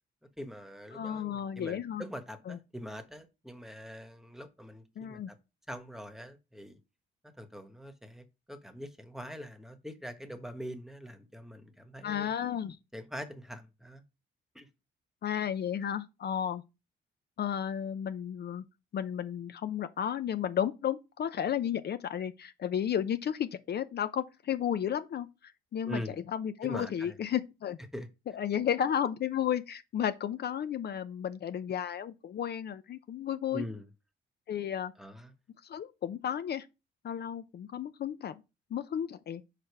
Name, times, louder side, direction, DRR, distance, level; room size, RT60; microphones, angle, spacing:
voice 1, 0.4-5.4 5.7-6.8 7.2-12.3 12.9-14.0 14.5-14.7 25.9-26.2 26.6-27.2 27.9-28.1 33.5-33.9 35.0-35.3, equal, ahead, 1.3 m, -43 dB
voice 2, 0.9-2.0 2.5-2.6 5.0-5.3 12.0-12.8 15.2-16.6 17.4-18.6 18.9-26.0 26.3-27.8 28.3-33.6 34.5-34.9 35.6-36.7 37.0-38.4 38.7-39.4, left 9 dB, 55° left, 0.7 m, -33 dB
5.7 x 5.1 x 4.8 m
cardioid pair, 90°, 20 cm